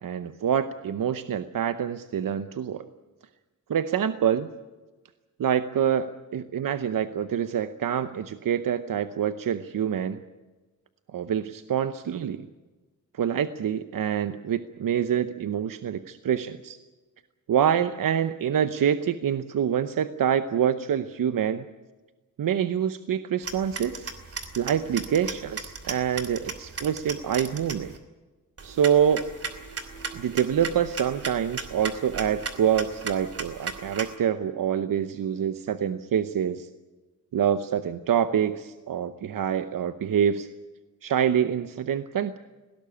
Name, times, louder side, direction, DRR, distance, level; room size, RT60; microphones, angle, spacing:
voice 1, 0.0-2.8 3.7-4.5 5.4-10.2 11.1-12.5 13.1-16.8 17.5-21.6 22.4-24.1 24.5-27.9 28.6-29.3 30.1-36.7 37.3-40.5 41.0-42.4, right 8 dB, 80° right, 11 dB, 0.9 m, -26 dB
sound 1, 23.4-28.0 28.6-34.2, right 4 dB, 45° right, 2.8 m, -37 dB
20.0 x 17.5 x 10.0 m, 1.2 s
wide cardioid pair, 105°, 33 cm